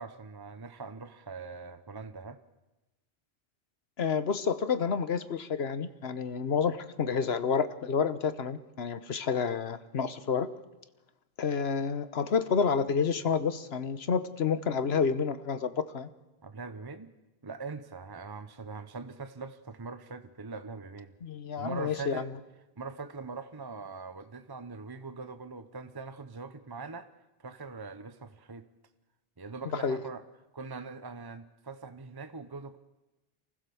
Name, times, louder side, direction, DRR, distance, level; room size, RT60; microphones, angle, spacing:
voice 1, 0.0-2.4 16.4-17.1 17.4-21.1 21.6-22.3 22.8-27.1 27.4-28.6 29.4-30.2 30.5-32.8, right 4 dB, 25° right, 10 dB, 0.8 m, -42 dB
voice 2, 4.0-10.5 11.4-16.1 21.2-22.3 29.7-30.0, left 6 dB, 80° left, 12 dB, 1.3 m, -29 dB
28.0 x 15.5 x 7.0 m, 1.0 s
omnidirectional pair, 1.0 m